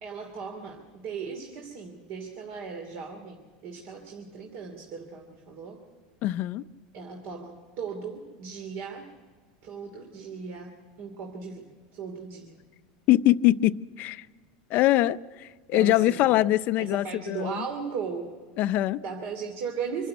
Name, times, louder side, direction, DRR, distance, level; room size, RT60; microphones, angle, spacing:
voice 1, 0.0-5.8 6.9-9.1 9.6-12.6 15.7-16.3 16.8-18.3 19.0-20.1, right 5 dB, 55° right, 2.8 m, -37 dB
voice 2, 6.2-6.6 13.1-14.3 14.7-17.6 18.6-19.0, left 15 dB, 50° left, 0.6 m, -23 dB
26.0 x 12.0 x 9.6 m
supercardioid pair, 130°, 4 cm